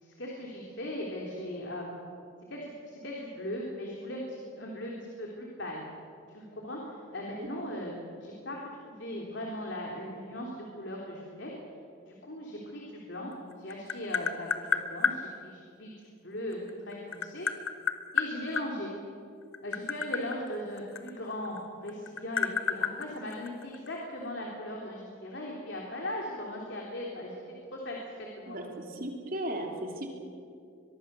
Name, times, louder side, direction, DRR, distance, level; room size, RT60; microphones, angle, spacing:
voice 1, 0.0-2.0 2.5-5.8 6.3-7.9 8.2-8.6 8.8-11.5 12.1-13.3 13.6-17.5 18.1-18.9 19.6-27.4 27.7-28.7, left 1 dB, 60° left, -2 dB, 3.3 m, -38 dB
Tap, 13.3-15.2 16.5-18.7 19.4-21.6 21.9-23.9, left 6 dB, 90° left, 1.3 m, -30 dB
voice 2, 28.5-30.1, right 1 dB, 45° right, 2 dB, 2.9 m, -36 dB
23.5 x 22.0 x 6.9 m, 2.4 s
head